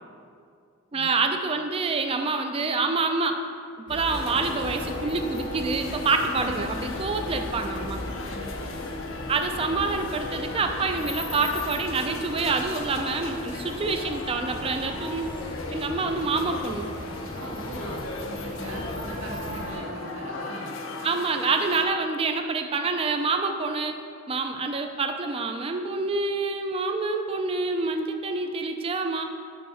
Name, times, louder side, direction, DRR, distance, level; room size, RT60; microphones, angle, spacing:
voice 1, 0.9-3.4 3.9-8.0 9.3-15.3 15.7-16.9 21.0-24.0 24.3-29.2, right 3 dB, 25° right, 5 dB, 0.4 m, -27 dB
sound 1, 3.9-19.8, left 1 dB, 25° left, 0.7 m, -38 dB
sound 2, 4.0-21.9, left 2 dB, 70° left, 0.5 m, -37 dB
voice 2, 8.3-8.8 17.3-20.7, right 1 dB, 80° right, -3 dB, 1.3 m, -40 dB
5.2 x 4.5 x 5.6 m, 2.3 s
head